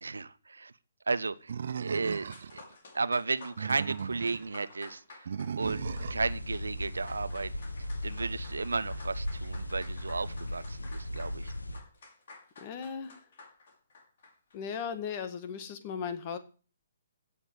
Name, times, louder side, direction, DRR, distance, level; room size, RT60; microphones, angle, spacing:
voice 1, 0.0-0.7 1.1-2.3 2.5-2.6 2.9-5.3 5.6-7.5 8.0-11.5, right 4 dB, 70° right, 15 dB, 1.0 m, -34 dB
Animal, 1.5-2.6 3.4-4.5 5.3-6.3, right 7 dB, 55° right, 0.6 m, -37 dB
sound 1, 2.2-15.1, left 3 dB, 50° left, 5.4 m, -53 dB
sound 2, 5.6-11.8, left 1 dB, 80° left, 1.8 m, -37 dB
voice 2, 12.6-13.2 14.5-16.4, left 7 dB, 30° left, 10 dB, 2.0 m, -37 dB
16.5 x 7.3 x 8.4 m, 0.38 s
figure-of-eight pair, 130°, 0 cm